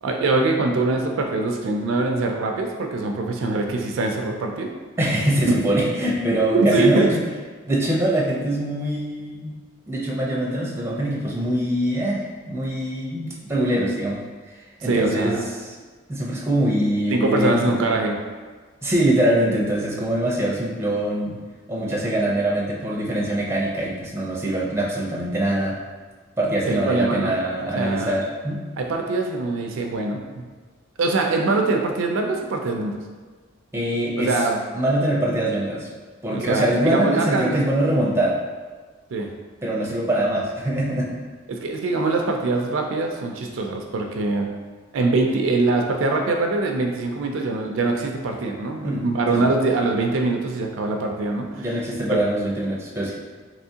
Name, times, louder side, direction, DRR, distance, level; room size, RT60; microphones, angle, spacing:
voice 1, 0.0-4.7 5.5-5.6 6.5-7.1 14.8-15.5 17.1-18.2 26.7-27.3 27.8-28.2 28.8-30.4 31.0-33.0 34.2-34.6 36.3-37.6 39.1-39.3 41.5-44.5 44.9-51.7 52.1-52.2, right 3 dB, 70° right, 3 dB, 0.4 m, -23 dB
voice 2, 5.0-7.2 7.6-9.5 9.9-14.2 14.8-15.4 16.1-17.9 18.8-21.4 21.7-25.8 26.4-28.6 33.7-34.3 34.7-35.9 36.2-38.4 39.6-41.2 48.8-49.5 51.6-53.2, right 1 dB, 10° right, -4 dB, 0.6 m, -23 dB
3.4 x 3.0 x 2.7 m, 1.4 s
head